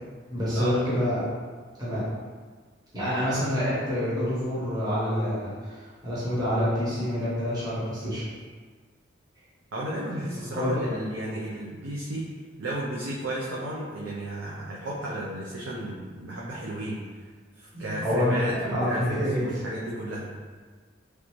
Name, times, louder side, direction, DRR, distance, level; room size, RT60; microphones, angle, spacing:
voice 1, 0.3-1.3 1.8-2.1 2.9-8.2 10.3-11.0 17.7-18.3 18.7-19.4, equal, 20° right, -10 dB, 1.0 m, -27 dB
voice 2, 9.7-12.3 12.6-17.0 17.6-20.3, right 1 dB, 75° right, -6 dB, 0.5 m, -33 dB
3.2 x 2.6 x 3.0 m, 1.5 s
head